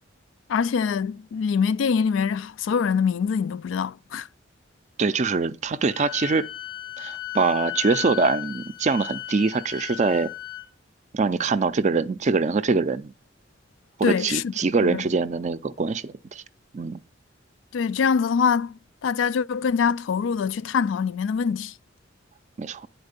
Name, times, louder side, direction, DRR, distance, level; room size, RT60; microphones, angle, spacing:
voice 1, 0.5-4.3 14.0-14.4 14.8-15.0 17.7-21.7, left 6 dB, 70° left, 0.3 m, -24 dB
voice 2, 5.0-6.5 7.0-10.3 11.1-13.1 14.0-16.4 16.7-17.0 22.6-22.9, right 4 dB, 35° right, 0.4 m, -24 dB
Wind instrument woodwind instrument, 5.9-10.7, left 14 dB, 90° left, 0.9 m, -35 dB
9.6 x 4.5 x 6.6 m
head